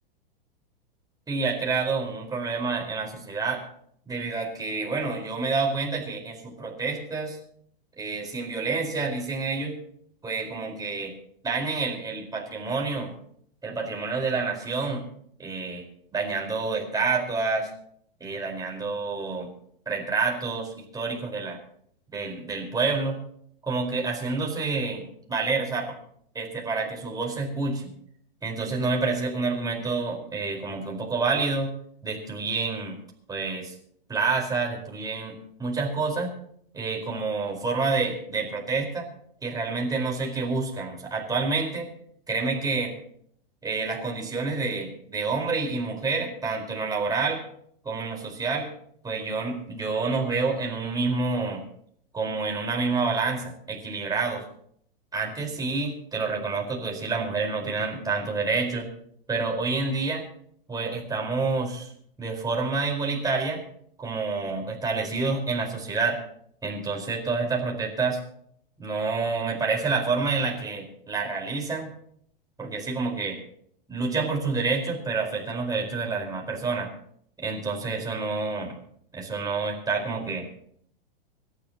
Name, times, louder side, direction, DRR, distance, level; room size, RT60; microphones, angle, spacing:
voice 1, 1.3-3.6 4.1-7.4 8.0-9.7 10.2-11.1 11.4-13.1 13.6-15.0 15.4-15.8 16.1-17.7 18.2-19.5 19.9-21.6 22.1-23.2 23.7-25.9 26.3-27.9 28.4-31.7 32.0-33.0 33.3-33.7 34.1-36.3 36.7-39.1 39.4-41.9 42.3-42.9 43.6-47.4 47.8-48.7 49.0-51.6 52.1-54.4 55.1-58.9 59.3-60.2 60.7-61.9 62.2-63.6 64.0-66.2 66.6-68.2 68.8-71.9 72.6-73.4 73.9-76.9 77.4-78.8 79.1-80.4, right 4 dB, 10° right, -1 dB, 4.7 m, -28 dB
26.0 x 12.5 x 3.0 m, 0.65 s
hypercardioid pair, 105°, 30 cm